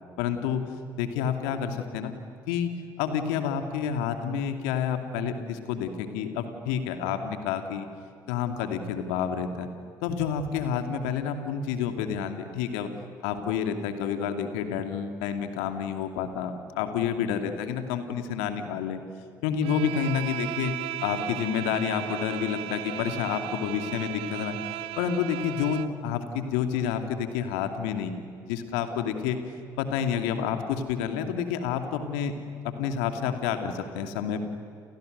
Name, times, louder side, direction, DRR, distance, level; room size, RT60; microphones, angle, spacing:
voice 1, 0.2-0.6 1.0-2.1 2.5-2.7 3.0-7.9 8.3-9.7 10.0-12.9 13.2-19.0 19.4-24.6 25.0-29.4 29.8-32.3 32.6-34.4, left 8 dB, 70° left, 7 dB, 2.5 m, -29 dB
Bowed string instrument, 19.6-26.0, right 13 dB, 65° right, 1.1 m, -36 dB
30.0 x 29.0 x 6.7 m, 2.5 s
figure-of-eight pair, 50°, 10 cm